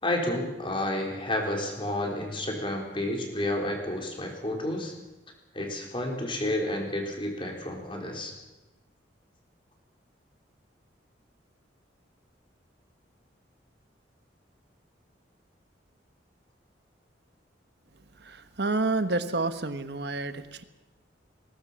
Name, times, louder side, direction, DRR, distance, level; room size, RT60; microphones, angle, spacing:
voice 1, 0.0-4.9 5.5-8.3, left 1 dB, 30° left, 2 dB, 4.2 m, -30 dB
voice 2, 18.2-20.6, right 3 dB, 60° right, 11 dB, 1.3 m, -29 dB
20.5 x 18.5 x 7.5 m, 1.1 s
head